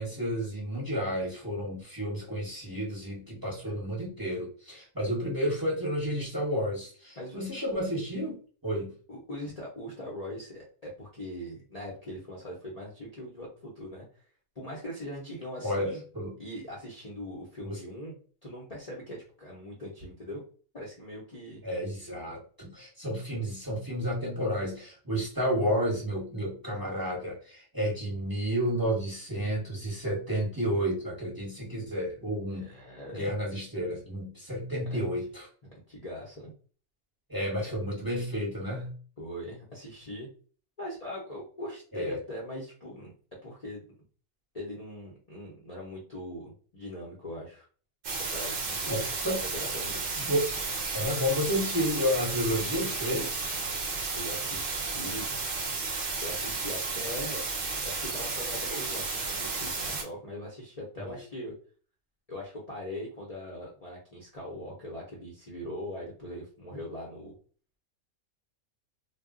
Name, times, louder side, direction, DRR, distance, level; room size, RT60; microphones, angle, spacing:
voice 1, 0.0-8.4 8.6-8.9 15.6-16.3 17.6-17.8 21.6-32.7 33.1-35.5 37.3-38.9 41.9-42.2 48.9-49.4 50.1-50.5 50.9-53.4 61.0-61.2, equal, 20° right, -4 dB, 0.9 m, -31 dB
voice 2, 9.1-14.0 14.6-16.0 16.4-18.1 18.4-20.4 20.7-21.6 32.5-33.3 34.9-35.1 35.9-36.5 39.2-40.3 40.8-43.1 43.4-43.9 44.5-47.6 48.2-49.1 49.6-50.1 54.1-55.4 56.2-57.5 57.8-61.5 62.3-67.3, left 1 dB, 40° left, -4 dB, 0.6 m, -41 dB
sound 1, 48.0-60.0, right 4 dB, 50° right, 0.7 m, -33 dB
2.3 x 2.1 x 3.6 m, 0.41 s
omnidirectional pair, 1.4 m